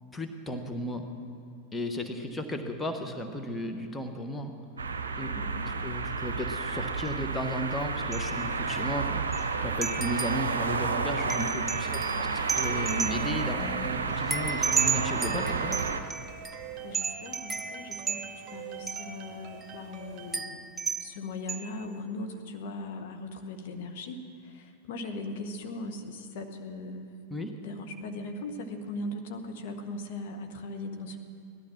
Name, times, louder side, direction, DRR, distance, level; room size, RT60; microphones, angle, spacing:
voice 1, 0.1-1.0 1.7-4.5 5.1-5.3 5.7-15.8 27.3-27.5, left 1 dB, 10° left, 5 dB, 1.1 m, -34 dB
sound 1, 4.8-16.0, right 4 dB, 70° right, 0.7 m, -31 dB
voice 2, 5.2-5.6 11.7-12.3 16.8-27.2 27.6-31.2, left 2 dB, 50° left, 4 dB, 1.1 m, -39 dB
sound 2, 7.1-7.2 8.1-8.5 8.8-8.9 9.3-9.5 9.8-10.5 11.3-13.5 14.3-16.6 16.9-18.5 18.9-19.2 19.6-19.7 20.3-21.1 21.5-21.8, right 5 dB, 10° right, 0.5 m, -33 dB
sound 3, 12.6-20.4, right 7 dB, 35° right, 1.3 m, -44 dB
17.5 x 12.0 x 6.0 m, 2.5 s
figure-of-eight pair, 90°, 0 cm